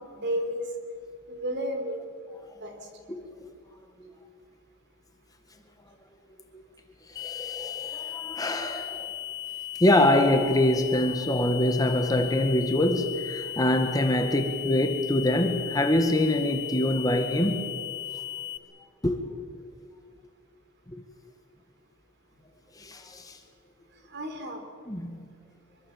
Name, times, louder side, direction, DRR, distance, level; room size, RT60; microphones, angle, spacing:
voice 1, 0.1-0.7 1.3-2.1 2.6-2.8 24.1-24.6, equal, 55° right, 5 dB, 3.6 m, -32 dB
voice 2, 7.1-9.1 9.8-17.7 19.0-19.2 20.9-21.0 22.7-23.4 24.9-25.2, left 1 dB, 15° left, 5 dB, 1.7 m, -24 dB
sound 1, 7.2-18.6, left 13 dB, 55° left, 1.4 m, -37 dB
25.0 x 23.5 x 7.3 m, 2.1 s
head